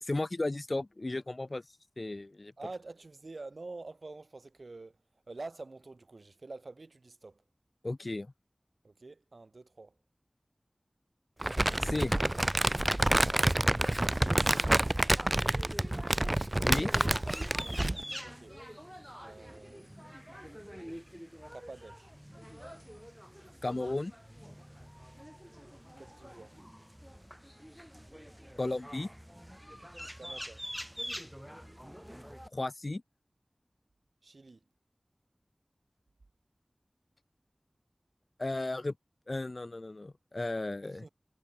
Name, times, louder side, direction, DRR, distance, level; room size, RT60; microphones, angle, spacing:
voice 1, 0.0-1.6 2.0-2.5 7.8-8.3 11.8-12.1 16.6-16.9 23.6-24.1 28.6-29.1 32.5-33.0 38.4-38.9 39.3-41.0, left 2 dB, 50° left, 0.7 m, -34 dB
voice 2, 2.6-7.4 8.8-10.0 14.4-14.8 18.2-18.6 19.2-20.2 21.5-22.1 26.0-26.6 30.2-30.7 34.2-34.6 40.8-41.1, right 3 dB, 75° right, 2.6 m, -47 dB
Crumpling crinkling, 11.4-18.0, right 1 dB, 30° right, 0.8 m, -28 dB
sound 1, 13.1-32.5, equal, 5° right, 1.1 m, -47 dB
wide cardioid pair, 50°, 0 cm